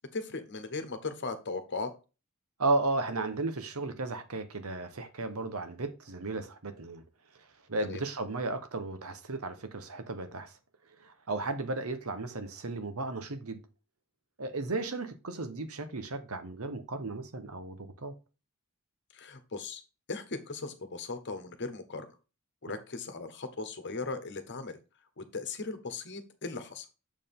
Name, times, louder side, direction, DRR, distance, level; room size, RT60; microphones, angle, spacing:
voice 1, 0.0-1.9 7.8-8.0 19.1-19.8 20.1-22.1 22.6-24.8 25.2-26.9, left 3 dB, 50° left, 1.2 m, -38 dB
voice 2, 2.6-7.0 7.4-10.6 11.0-13.6 14.4-18.1, right 2 dB, 70° right, 1.1 m, -34 dB
7.3 x 4.6 x 3.6 m
head